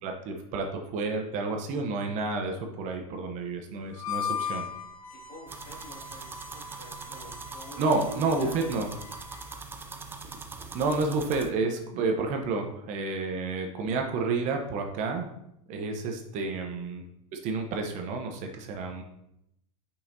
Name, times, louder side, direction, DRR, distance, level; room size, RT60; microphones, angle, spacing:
voice 1, 0.0-4.7 7.8-8.9 10.7-15.3 15.7-17.0 17.3-19.0, right 3 dB, 40° right, 3 dB, 1.0 m, -30 dB
Harmonica, 3.9-9.6, left 6 dB, 80° left, 0.9 m, -38 dB
voice 2, 5.1-8.1 8.4-8.6, left 2 dB, 55° left, -2 dB, 2.4 m, -49 dB
sound 1, 5.5-11.5, right 4 dB, 10° right, 0.5 m, -42 dB
6.7 x 5.8 x 2.8 m, 0.79 s
hypercardioid pair, 120°, 18 cm